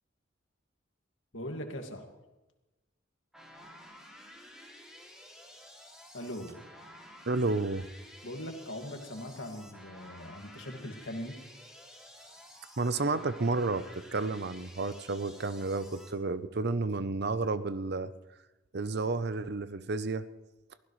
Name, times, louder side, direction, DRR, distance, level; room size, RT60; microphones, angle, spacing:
voice 1, 1.3-2.1 6.1-6.6 8.2-11.3, equal, 85° left, 4 dB, 2.1 m, -40 dB
sound 1, 3.3-16.1, equal, 5° right, 2.6 m, -52 dB
voice 2, 7.3-7.9 12.8-18.1 18.7-20.2, right 3 dB, 55° right, 13 dB, 0.7 m, -31 dB
23.0 x 16.0 x 3.2 m, 1.1 s
head